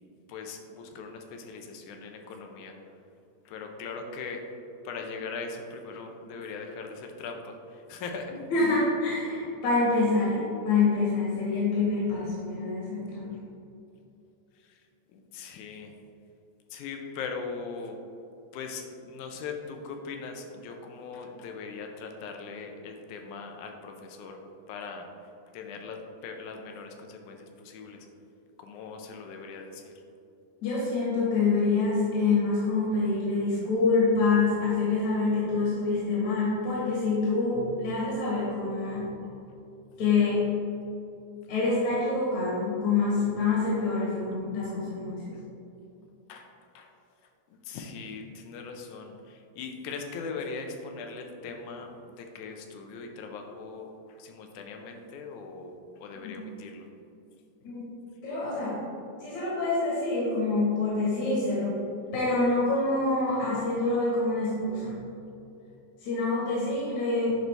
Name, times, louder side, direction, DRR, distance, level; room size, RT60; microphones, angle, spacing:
voice 1, 0.3-2.7 3.5-4.4 4.9-7.6 7.9-8.4 15.1-15.9 16.7-18.0 18.5-24.4 24.7-25.1 25.5-28.0 28.6-29.9 46.3-46.5 46.8-46.9 47.7-53.9 54.2-55.7 56.0-56.9, left 4 dB, 90° left, 4 dB, 2.2 m, -40 dB
voice 2, 8.5-13.4 30.6-39.1 40.0-40.4 41.5-45.4 56.2-56.3 57.6-57.9 58.2-58.8 59.2-61.8 62.1-65.0 66.0-67.4, left 3 dB, 70° left, -8 dB, 2.8 m, -26 dB
11.0 x 4.1 x 3.3 m, 2.7 s
omnidirectional pair, 3.4 m